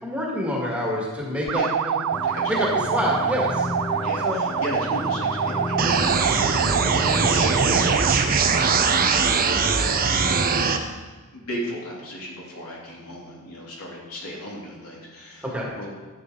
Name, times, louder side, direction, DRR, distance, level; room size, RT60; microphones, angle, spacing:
voice 1, 0.0-2.6 2.9-3.7 4.2-4.4 15.5-15.7, left 1 dB, 5° right, -3 dB, 1.9 m, -27 dB
sound 1, 1.5-8.3, right 8 dB, 65° right, 0.4 m, -26 dB
sound 2, 2.1-7.9, left 2 dB, 20° left, 0.6 m, -31 dB
voice 2, 2.2-2.7 4.0-9.3 9.6-10.2 11.3-15.9, equal, 75° left, -4 dB, 3.2 m, -36 dB
sound 3, 5.8-10.8, right 5 dB, 40° right, 0.8 m, -21 dB
13.0 x 8.4 x 3.8 m, 1.3 s
head